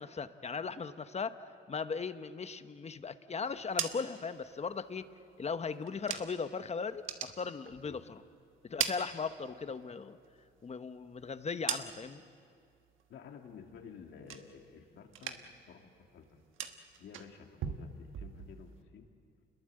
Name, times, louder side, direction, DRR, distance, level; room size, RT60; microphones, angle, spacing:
voice 1, 0.0-1.4 1.7-5.1 5.4-8.2 8.6-10.2 10.6-12.2, left 5 dB, 35° left, 11 dB, 1.0 m, -38 dB
sound 1, 3.5-6.6 6.9-8.2 8.5-9.8 10.2-12.3 12.7-13.2 13.5-14.8 15.1-15.7 15.9-18.8, right 9 dB, 85° right, 1.3 m, -42 dB
voice 2, 13.1-19.1, left 6 dB, 75° left, 3 dB, 2.5 m, -53 dB
28.0 x 21.0 x 7.8 m, 2.3 s
cardioid pair, 90°, 20 cm